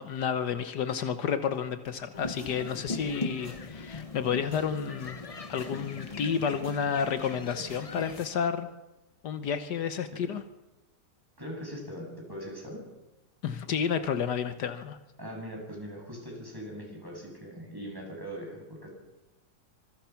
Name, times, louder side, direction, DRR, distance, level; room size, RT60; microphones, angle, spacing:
voice 1, 0.0-5.2 5.5-8.7 9.2-10.4 13.4-15.0, left 7 dB, 75° left, 10 dB, 1.6 m, -31 dB
sound 1, 1.9-8.2, right 2 dB, 65° right, 5.2 m, -53 dB
sound 2, 2.1-8.3, left 3 dB, 30° left, 0.8 m, -39 dB
voice 2, 11.4-12.9 15.2-18.9, equal, 10° right, -1 dB, 7.1 m, -41 dB
25.5 x 22.5 x 5.9 m, 1.1 s
omnidirectional pair, 1.8 m